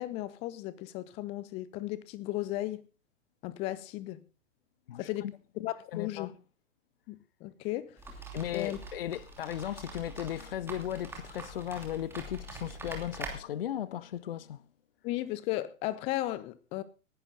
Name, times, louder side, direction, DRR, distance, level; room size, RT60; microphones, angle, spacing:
voice 1, 0.0-2.9 3.4-4.2 5.0-5.3 5.6-6.3 7.1-8.0 8.5-8.8 15.0-16.8, left 16 dB, 15° left, 0.7 m, -35 dB
voice 2, 4.9-5.3 5.6-6.3 8.3-14.6, left 11 dB, 45° left, 0.8 m, -36 dB
sound 1, 8.0-13.3, right 2 dB, 5° right, 2.8 m, -44 dB
19.0 x 11.5 x 3.9 m
figure-of-eight pair, 115°, 40 cm